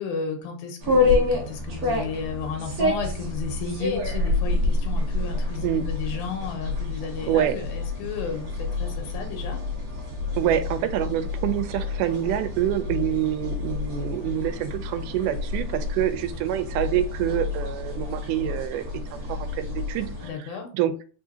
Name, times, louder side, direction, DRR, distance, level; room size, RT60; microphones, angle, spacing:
voice 1, 0.0-9.6 20.2-20.7, left 5 dB, 75° left, 4 dB, 2.3 m, -33 dB
sound 1, 0.8-20.3, left 3 dB, 65° right, 0.9 m, -28 dB
voice 2, 10.4-18.8 19.1-20.1 20.7-20.9, right 11 dB, 90° right, 11 dB, 2.1 m, -26 dB
4.6 x 3.7 x 2.7 m, 0.38 s
omnidirectional pair, 3.6 m